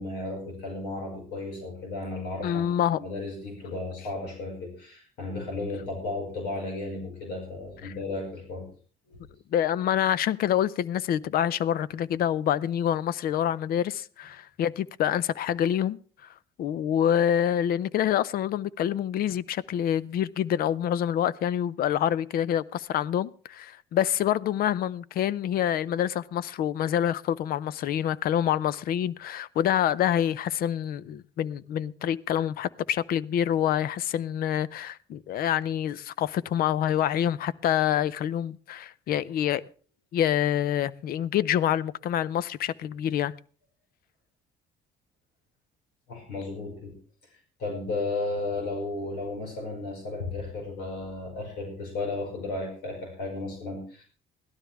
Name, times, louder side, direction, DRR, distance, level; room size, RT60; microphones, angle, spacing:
voice 1, 0.0-8.7 9.1-9.2 46.1-46.9 47.6-54.0, left 2 dB, 85° left, 5.4 m, -34 dB
voice 2, 2.4-3.0 7.8-7.9 9.5-16.0 16.6-39.6 40.1-43.3, left 10 dB, 60° left, 0.6 m, -26 dB
17.0 x 12.5 x 3.5 m
cardioid pair, 110°, 17 cm